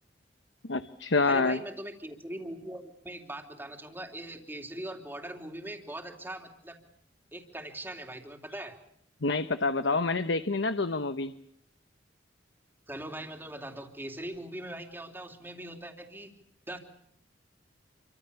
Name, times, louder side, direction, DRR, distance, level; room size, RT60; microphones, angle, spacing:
voice 1, 0.7-1.6 9.2-11.3, left 3 dB, 85° left, 10 dB, 1.0 m, -27 dB
voice 2, 1.2-6.8 7.3-8.8 12.9-16.3 16.7-16.8, right 1 dB, 10° right, 3 dB, 3.1 m, -41 dB
28.5 x 25.0 x 7.1 m, 0.70 s
head